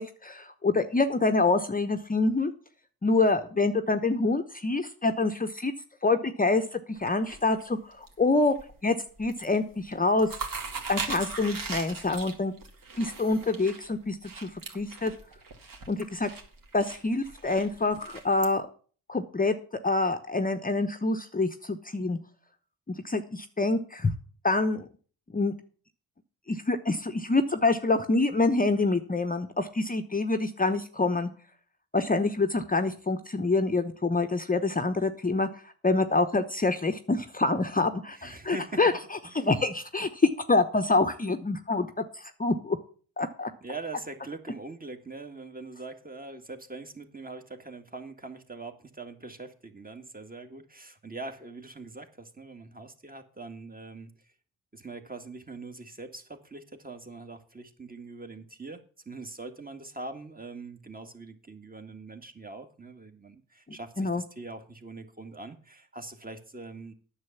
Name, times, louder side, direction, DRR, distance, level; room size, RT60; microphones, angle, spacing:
voice 1, 0.0-2.5 3.0-5.7 6.0-8.5 8.8-10.3 10.9-12.5 13.0-14.5 14.7-15.1 15.9-16.3 16.7-18.7 19.1-19.5 19.8-22.2 22.9-24.1 24.4-24.9 25.3-25.5 26.5-31.3 31.9-35.5 35.8-38.9 39.3-41.9 42.1-42.8 43.2-43.5 64.0-64.2, left 3 dB, 20° left, 7 dB, 1.0 m, -26 dB
sound 1, 7.0-8.1 8.5-8.9 9.2-9.6 9.9-18.5, right 4 dB, 55° right, 2.5 m, -39 dB
voice 2, 38.1-38.8 39.2-39.5 43.6-54.1 54.7-58.8 59.1-66.9, right 3 dB, 20° right, 6 dB, 2.0 m, -42 dB
9.6 x 6.7 x 7.2 m, 0.42 s
hypercardioid pair, 50°, 40 cm